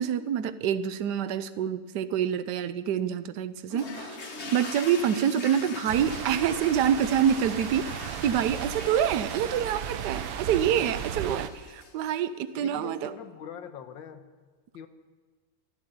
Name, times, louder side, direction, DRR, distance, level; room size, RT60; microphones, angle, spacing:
voice 1, 0.0-4.2 4.5-7.9 8.2-13.1, right 9 dB, 65° right, 12 dB, 1.3 m, -26 dB
sound 1, 3.7-12.2, left 3 dB, 40° left, 1.6 m, -42 dB
sound 2, 5.9-11.5, right 9 dB, 85° right, 1.5 m, -35 dB
voice 2, 12.6-14.2 14.7-14.9, left 8 dB, 80° left, 9 dB, 1.8 m, -43 dB
13.0 x 12.0 x 9.0 m, 1.4 s
omnidirectional pair, 2.1 m